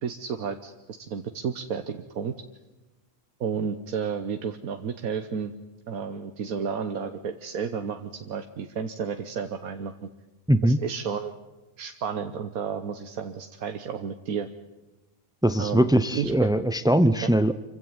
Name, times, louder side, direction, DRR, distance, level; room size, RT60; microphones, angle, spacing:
voice 1, 0.0-2.3 3.4-5.5 5.9-10.1 10.6-11.3 11.8-14.5 15.6-15.9 16.1-16.5, right 6 dB, 85° right, 6 dB, 1.5 m, -32 dB
voice 2, 10.5-10.8 15.4-17.5, right 1 dB, 5° right, 12 dB, 0.3 m, -21 dB
26.0 x 16.0 x 9.6 m, 1.1 s
omnidirectional pair, 1.5 m